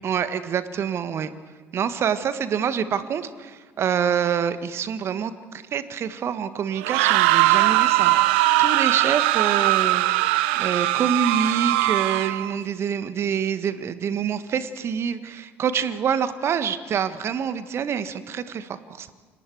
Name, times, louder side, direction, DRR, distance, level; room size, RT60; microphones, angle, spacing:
voice 1, 0.0-1.3 1.7-19.1, right 7 dB, 45° right, 12 dB, 1.5 m, -26 dB
sound 1, 6.8-12.5, right 16 dB, 70° right, 0.7 m, -20 dB
29.5 x 26.0 x 4.7 m, 1.5 s
figure-of-eight pair, 55°, 6 cm